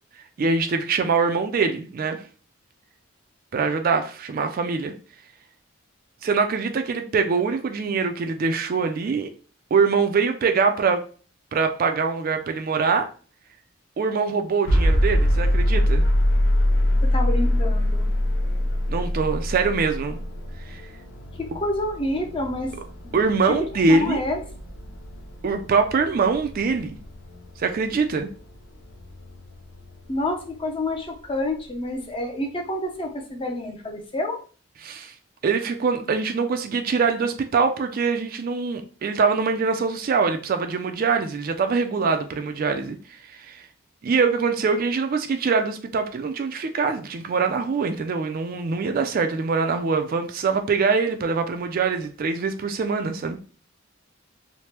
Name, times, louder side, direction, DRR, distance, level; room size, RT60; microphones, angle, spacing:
voice 1, 0.4-2.2 3.5-4.9 6.2-9.3 9.7-11.0 11.5-13.1 14.0-16.0 18.9-20.2 20.7-20.8 23.1-24.2 25.4-27.0 27.6-28.3 34.8-35.1 35.4-43.0 43.3-43.6 44.0-53.4, right 4 dB, 45° right, 7 dB, 0.3 m, -23 dB
sound 1, 14.7-30.6, left 1 dB, 70° left, 0.5 m, -24 dB
voice 2, 17.1-18.1 21.4-22.7 23.0-23.2 23.9-24.4 30.1-34.4, left 1 dB, 25° left, 2 dB, 0.6 m, -28 dB
3.2 x 2.1 x 2.9 m, 0.39 s
head